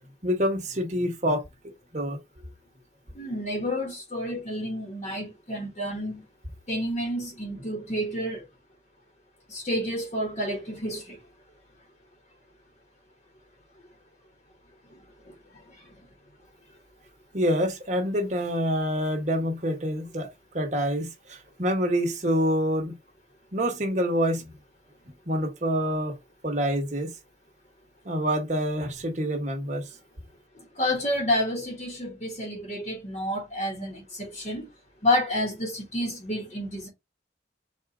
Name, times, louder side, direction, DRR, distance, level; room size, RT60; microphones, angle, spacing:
voice 1, 0.2-1.4 1.9-2.2 17.3-20.3 20.5-22.9 23.5-24.4 25.3-26.1 26.4-27.1 28.0-29.8, equal, 40° right, 1.1 m, -26 dB
voice 2, 3.1-6.2 6.7-8.4 9.5-11.2 30.8-34.6 35.0-36.9, left 1 dB, 35° left, 1.1 m, -29 dB
4.2 x 2.4 x 4.7 m
head